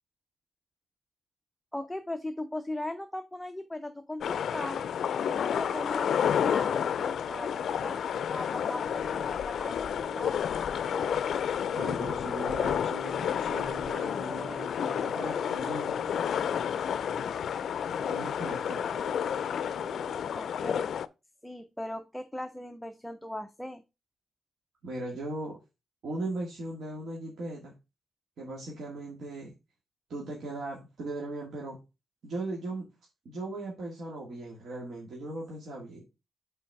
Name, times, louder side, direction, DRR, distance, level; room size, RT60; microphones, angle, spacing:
voice 1, 1.7-4.9 5.3-10.5 20.3-20.9 21.4-23.8, left 1 dB, 5° left, 7 dB, 0.5 m, -39 dB
sound 1, 4.2-21.1, left 8 dB, 65° left, 0.4 m, -30 dB
sound 2, 5.1-20.5, right 2 dB, 35° right, 1.2 m, -49 dB
voice 2, 11.8-15.9 18.1-18.9 24.8-25.6 26.0-27.7 28.4-29.5 30.1-31.8 32.2-32.9 33.3-36.0, right 2 dB, 65° right, -3 dB, 1.9 m, -38 dB
5.9 x 4.6 x 4.6 m, 0.27 s
wide cardioid pair, 145°, 0 cm